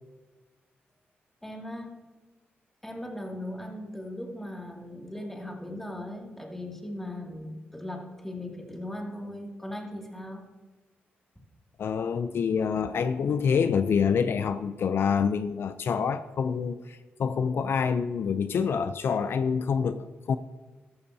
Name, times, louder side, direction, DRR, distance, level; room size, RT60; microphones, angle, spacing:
voice 1, 1.4-2.0 2.8-10.5, left 1 dB, 5° left, 0 dB, 2.3 m, -38 dB
voice 2, 11.8-20.4, left 6 dB, 65° left, 11 dB, 0.4 m, -27 dB
13.5 x 12.5 x 2.8 m, 1.3 s
cardioid pair, 75°, 4 cm